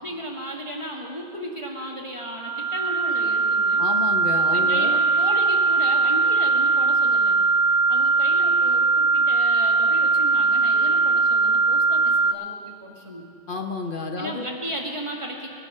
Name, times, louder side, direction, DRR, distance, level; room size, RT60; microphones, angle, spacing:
voice 1, 0.0-3.8 4.5-7.4 7.7-13.3 14.2-15.5, equal, 30° right, -1 dB, 2.0 m, -35 dB
sound 1, 2.4-12.3, right 4 dB, 75° right, 0.9 m, -20 dB
voice 2, 3.8-5.0 13.5-14.5, left 3 dB, 55° left, 4 dB, 1.1 m, -30 dB
25.0 x 10.0 x 5.6 m, 2.5 s
omnidirectional pair, 1.1 m